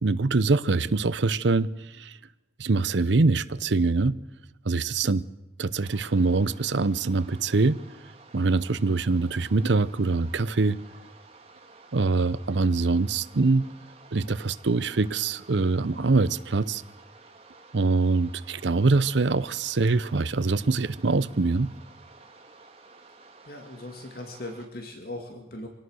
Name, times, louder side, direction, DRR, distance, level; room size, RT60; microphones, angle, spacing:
voice 1, 0.0-1.7 2.0-2.1 2.6-4.1 4.7-5.2 5.6-7.8 8.3-10.8 11.9-13.6 14.1-16.8 17.7-21.7, right 3 dB, 80° right, 0.7 m, -24 dB
sound 1, 5.8-24.7, right 3 dB, 35° right, 2.1 m, -52 dB
voice 2, 23.5-25.7, left 1 dB, 55° left, 2.2 m, -39 dB
24.5 x 18.0 x 6.4 m
head